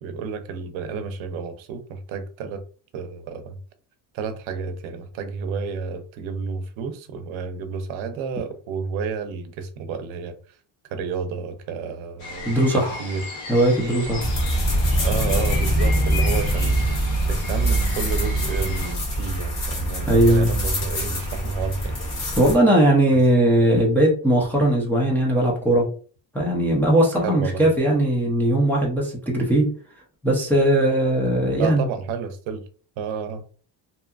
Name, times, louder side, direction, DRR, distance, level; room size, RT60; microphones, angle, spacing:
voice 1, 0.0-2.6 2.9-3.6 4.1-10.4 10.9-12.5 13.0-13.2 15.0-22.0 27.2-27.6 31.6-32.6 33.0-33.4, right 5 dB, 85° right, 0.6 m, -30 dB
sound 1, 12.2-18.9, left 2 dB, 85° left, 1.1 m, -36 dB
voice 2, 12.5-13.0 13.5-14.3 20.1-20.5 22.4-25.9 26.3-29.7 30.2-31.9, right 1 dB, 5° left, 0.3 m, -19 dB
sound 2, 14.2-22.5, right 1 dB, 35° left, 0.9 m, -23 dB
2.7 x 2.3 x 2.3 m
cardioid pair, 165°, 46 cm